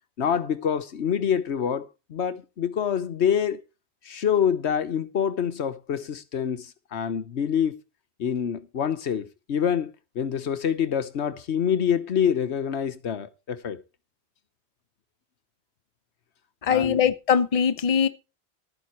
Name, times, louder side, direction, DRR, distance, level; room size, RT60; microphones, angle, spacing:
voice 1, 0.2-3.6 4.0-7.8 8.2-13.8 16.7-17.0, left 8 dB, 80° left, 1.3 m, -26 dB
voice 2, 16.6-18.1, left 7 dB, 35° left, 0.8 m, -21 dB
12.0 x 9.5 x 4.3 m
omnidirectional pair, 1.1 m